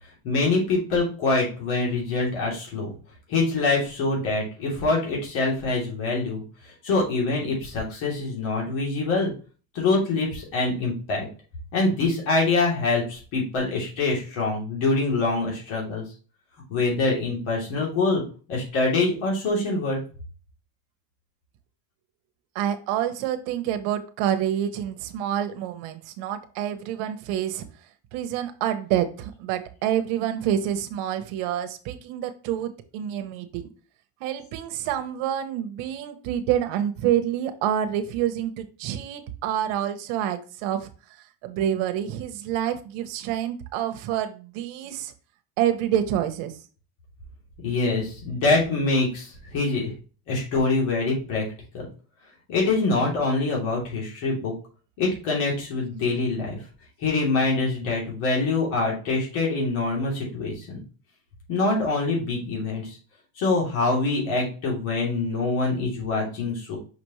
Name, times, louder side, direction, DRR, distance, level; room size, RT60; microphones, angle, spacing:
voice 1, 0.2-2.9 3.3-9.3 9.7-11.3 11.7-16.0 16.7-18.2 18.5-20.0 47.6-49.9 50.3-51.4 51.7-51.8 52.5-54.5 55.0-56.6 57.0-60.8 61.5-63.0 63.4-66.8, left 3 dB, 75° left, -3 dB, 3.2 m, -25 dB
voice 2, 22.5-27.6 28.1-33.7 34.2-40.9 41.2-45.1 45.6-46.6, right 10 dB, 75° right, 8 dB, 1.1 m, -27 dB
6.0 x 5.2 x 3.1 m, 0.37 s
cardioid pair, 145°, 49 cm